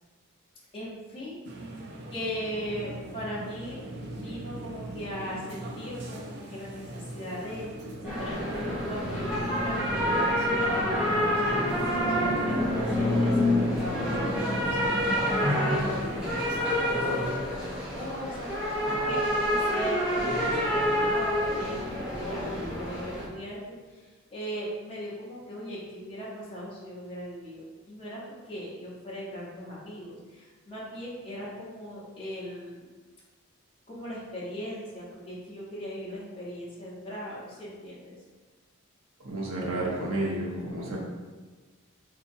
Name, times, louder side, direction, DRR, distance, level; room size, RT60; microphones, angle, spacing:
voice 1, 0.7-1.4 2.1-3.8 4.1-17.7 17.9-23.6 23.9-32.9 33.9-38.1, equal, 25° left, -8 dB, 1.0 m, -39 dB
sound 1, 1.4-17.3, right 1 dB, 55° right, 0.5 m, -41 dB
sound 2, 8.0-23.3, equal, 5° right, 0.9 m, -27 dB
voice 2, 39.2-41.0, right 1 dB, 75° right, -4 dB, 0.9 m, -31 dB
3.7 x 2.8 x 2.7 m, 1.3 s
head